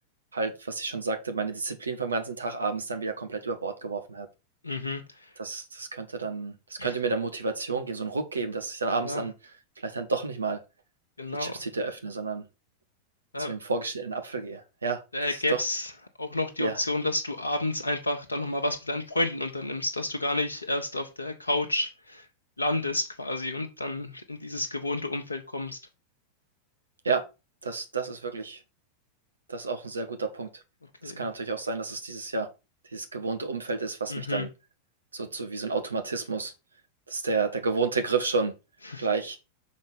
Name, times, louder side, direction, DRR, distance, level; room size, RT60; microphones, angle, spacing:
voice 1, 0.3-4.3 5.4-9.3 9.8-10.6 11.4-12.4 13.4-15.0 15.3-15.6 16.6-16.8 27.0-27.2 27.6-28.6 29.5-30.5 31.2-32.5 32.9-34.5 35.1-36.5 37.1-38.5 39.0-39.4, right 4 dB, 75° right, 1.5 m, -30 dB
voice 2, 4.6-5.3 6.8-6.9 9.0-9.3 11.2-11.6 13.3-13.5 15.1-15.9 16.2-22.3 22.6-25.8 31.0-31.3 34.1-34.5 38.9-39.1, left 2 dB, 80° left, 1.0 m, -30 dB
6.4 x 4.3 x 5.6 m
figure-of-eight pair, 90°, 0 cm